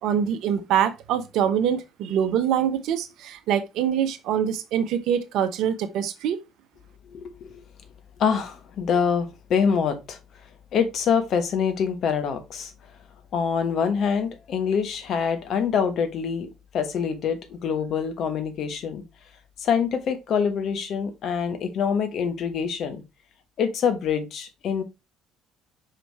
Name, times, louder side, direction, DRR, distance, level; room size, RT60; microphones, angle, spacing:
voice 1, 0.0-6.4, right 9 dB, 60° right, 0.7 m, -24 dB
voice 2, 8.2-10.2 10.7-12.7 13.3-16.5 16.7-19.0 19.6-23.0 23.6-24.8, left 6 dB, 50° left, 1.2 m, -25 dB
5.7 x 5.1 x 3.2 m
figure-of-eight pair, 50°, 0 cm